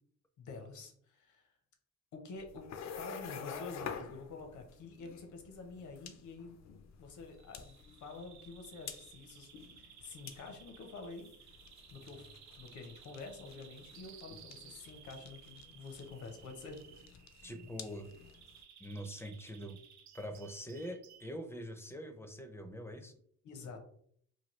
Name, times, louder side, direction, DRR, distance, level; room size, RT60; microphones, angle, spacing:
voice 1, 0.4-1.5 2.1-6.6 7.0-9.5 9.8-11.3 11.9-12.3 12.6-16.8 23.4-23.8, left 3 dB, 75° left, 4 dB, 0.8 m, -48 dB
sound 1, 2.3-18.6, left 7 dB, 60° left, 0.5 m, -50 dB
Bird vocalization bird call bird song, 7.3-21.3, right 8 dB, 65° right, 0.5 m, -58 dB
voice 2, 17.4-18.1 18.8-19.8 20.1-23.1, equal, 10° left, 6 dB, 0.4 m, -44 dB
3.1 x 2.3 x 3.1 m, 0.63 s
cardioid pair, 90°, 30 cm